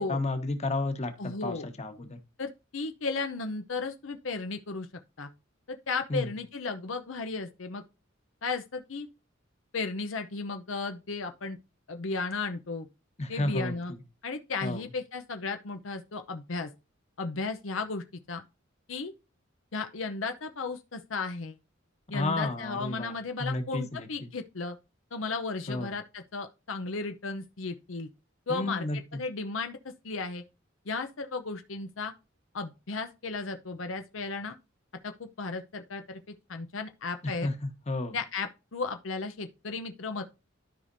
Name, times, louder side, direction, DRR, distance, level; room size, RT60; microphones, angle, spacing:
voice 1, 0.0-2.2 6.1-6.3 13.2-13.8 14.6-14.8 22.1-23.1 23.4-24.1 25.7-25.9 28.5-29.0 37.2-38.2, left 2 dB, 35° left, 1.4 m, -32 dB
voice 2, 1.2-1.7 2.4-4.9 5.2-5.3 5.7-7.8 8.4-9.1 9.7-11.6 11.9-12.9 13.3-13.9 14.2-16.7 17.2-18.4 18.9-19.1 19.7-21.6 22.1-24.8 25.1-28.1 28.5-30.4 30.9-32.1 32.5-34.6 35.0-37.5 38.1-40.2, left 4 dB, 80° left, 0.8 m, -35 dB
13.0 x 5.1 x 2.7 m
head